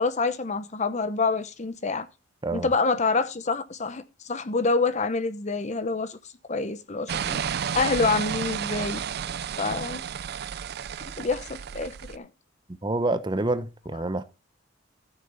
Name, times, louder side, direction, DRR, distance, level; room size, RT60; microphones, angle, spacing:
voice 1, 0.0-2.1 2.5-6.2 6.5-7.4 7.7-9.0 9.6-10.0 11.2-12.3, left 4 dB, 35° left, 0.8 m, -27 dB
sound 1, 7.1-12.2, right 7 dB, 55° right, 0.4 m, -32 dB
voice 2, 12.8-14.2, right 2 dB, 25° right, 0.8 m, -27 dB
14.5 x 6.6 x 4.0 m
head